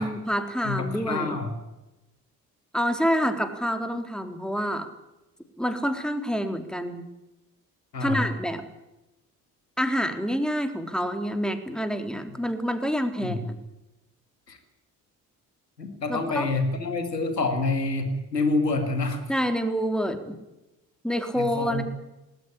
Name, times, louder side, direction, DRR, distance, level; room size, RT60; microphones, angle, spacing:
voice 1, 0.0-1.4 2.7-4.9 5.6-7.0 8.0-8.7 9.8-13.5 16.1-16.5 19.3-20.4 21.0-21.8, equal, ahead, 7 dB, 3.7 m, -27 dB
voice 2, 0.6-1.6 7.9-8.3 13.2-13.5 14.5-14.6 15.8-19.2 21.4-21.8, left 3 dB, 90° left, 7 dB, 2.1 m, -27 dB
19.5 x 18.0 x 10.0 m, 0.97 s
figure-of-eight pair, 45°, 48 cm